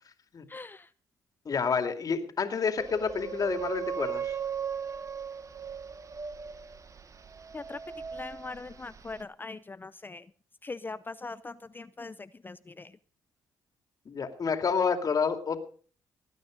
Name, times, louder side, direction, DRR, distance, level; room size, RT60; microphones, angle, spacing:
voice 1, 0.5-0.9 7.5-10.3 10.6-12.9, left 3 dB, 25° left, 15 dB, 0.6 m, -41 dB
voice 2, 1.4-4.4 14.1-15.6, left 5 dB, 45° left, 7 dB, 2.6 m, -29 dB
sound 1, 2.8-9.2, right 7 dB, 40° right, 1.3 m, -38 dB
19.5 x 9.1 x 5.2 m, 0.43 s
supercardioid pair, 65°, 8 cm